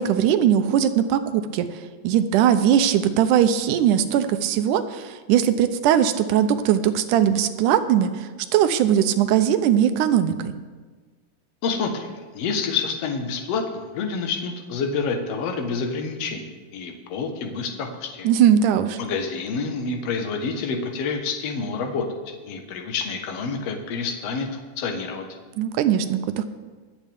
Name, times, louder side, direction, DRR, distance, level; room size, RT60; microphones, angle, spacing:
voice 1, 0.0-10.4 18.2-19.0 25.6-26.4, right 9 dB, 85° right, 10 dB, 2.2 m, -20 dB
voice 2, 11.6-18.3 19.0-22.1 22.4-25.3, left 4 dB, 60° left, 4 dB, 2.1 m, -28 dB
23.5 x 8.3 x 3.5 m, 1.4 s
omnidirectional pair, 3.6 m